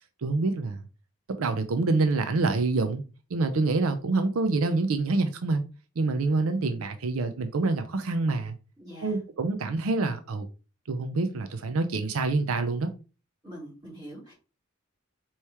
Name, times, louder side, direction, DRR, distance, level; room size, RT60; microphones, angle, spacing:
voice 1, 0.2-0.8 1.4-3.0 3.3-5.6 6.0-8.6 9.0-10.5 10.9-12.9, right 3 dB, 90° right, 0.5 m, -26 dB
voice 2, 8.8-9.2 13.4-14.3, equal, 20° right, 2.3 m, -43 dB
4.3 x 3.1 x 3.4 m
head